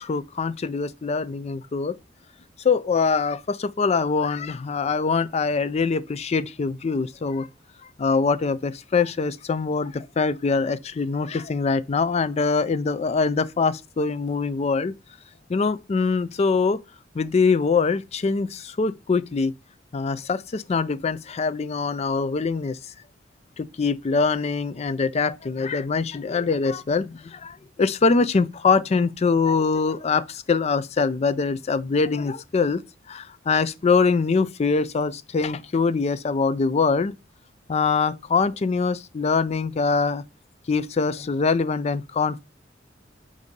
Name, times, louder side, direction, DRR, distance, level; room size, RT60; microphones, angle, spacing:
voice 1, 0.0-2.0 2.6-7.5 8.0-14.9 15.5-16.8 17.2-19.5 19.9-22.8 23.6-32.8 33.1-37.1 37.7-40.2 40.7-42.4, left 4 dB, 35° left, 0.4 m, -23 dB
8.0 x 2.7 x 5.2 m
head